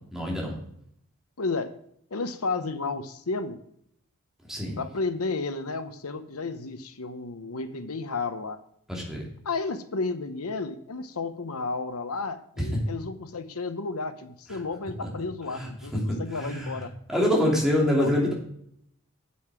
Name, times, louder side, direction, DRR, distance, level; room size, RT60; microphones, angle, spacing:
voice 1, 0.1-0.6 4.5-4.8 8.9-9.2 12.6-12.7 15.5-16.0 16.3-16.8 17.1-18.3, left 1 dB, ahead, -3 dB, 2.8 m, -25 dB
voice 2, 1.4-1.7 2.1-3.6 4.8-8.6 9.4-16.9 18.0-18.1, left 3 dB, 85° left, 10 dB, 0.9 m, -32 dB
8.5 x 7.7 x 4.8 m, 0.70 s
head